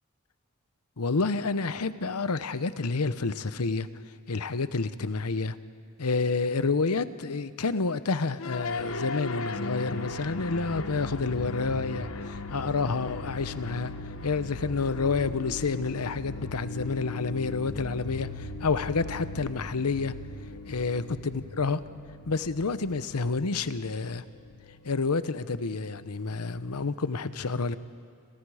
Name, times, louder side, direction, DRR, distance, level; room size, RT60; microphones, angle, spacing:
voice 1, 1.0-3.9 4.3-5.6 6.0-13.9 14.2-20.1 20.7-21.8 22.3-24.2 24.8-27.8, left 4 dB, 90° left, 13 dB, 0.9 m, -29 dB
sound 1, 8.4-26.7, left 3 dB, 65° left, 1.0 m, -38 dB
29.0 x 28.0 x 4.9 m, 2.3 s
head